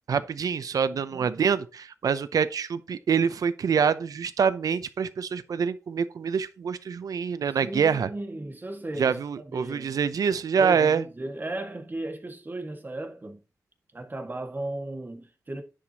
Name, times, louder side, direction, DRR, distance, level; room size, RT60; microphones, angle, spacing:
voice 1, 0.1-8.1 9.0-11.0, right 6 dB, 85° right, 0.6 m, -25 dB
voice 2, 0.9-1.3 7.5-10.0 10.6-13.4 13.9-15.6, right 2 dB, 35° right, 1.9 m, -36 dB
10.0 x 7.6 x 3.0 m
cardioid pair, 70°, 6 cm